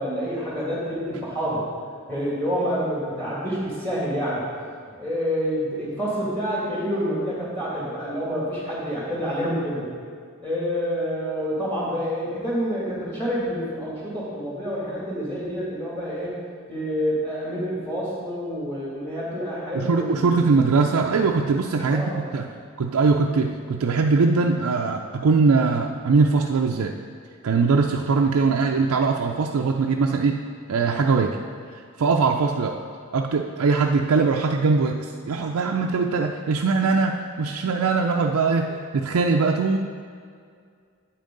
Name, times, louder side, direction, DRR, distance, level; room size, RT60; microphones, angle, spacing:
voice 1, 0.0-1.6 2.1-4.4 5.0-9.9 10.4-16.3 16.7-20.3 21.9-22.3, equal, 10° left, -7 dB, 2.3 m, -28 dB
voice 2, 19.7-22.5 22.8-27.0 27.4-30.4 30.7-31.4 31.7-32.8 33.1-39.8, right 4 dB, 80° right, 1 dB, 0.4 m, -21 dB
8.9 x 8.3 x 3.9 m, 2.2 s
head